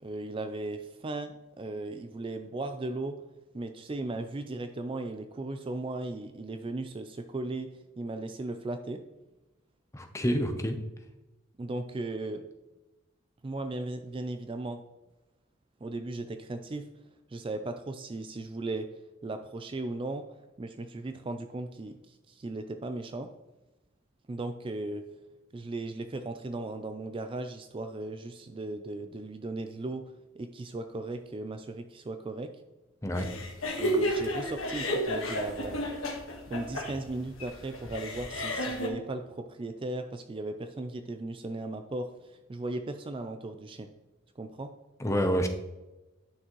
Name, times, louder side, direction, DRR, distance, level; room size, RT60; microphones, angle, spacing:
voice 1, 0.0-3.2 3.5-9.0 11.6-12.5 13.4-14.8 15.8-16.9 17.3-20.2 20.6-23.3 24.3-25.0 25.5-32.5 33.8-35.8 36.5-43.9 44.4-44.7, right 2 dB, 25° right, 8 dB, 0.3 m, -37 dB
voice 2, 9.9-10.8 33.0-33.3 45.0-45.5, equal, 15° left, 5 dB, 0.7 m, -28 dB
sound 1, 33.2-38.9, equal, 90° left, 1.4 m, -32 dB
10.0 x 6.2 x 3.0 m, 1.1 s
head